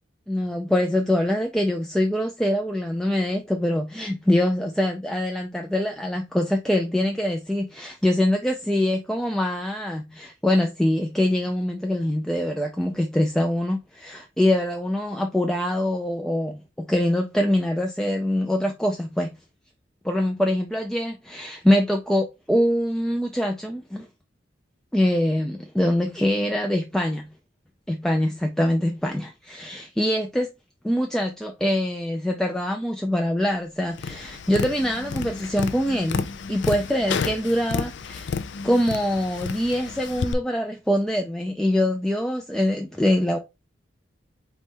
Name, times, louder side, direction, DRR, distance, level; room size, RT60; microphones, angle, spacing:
voice 1, 0.3-19.3 20.0-24.1 24.9-27.3 27.9-30.5 30.8-38.3 38.6-43.4, left 1 dB, 5° left, 0.3 m, -24 dB
Tap, 33.9-40.3, left 5 dB, 70° left, 0.4 m, -31 dB
4.1 x 3.1 x 3.5 m
head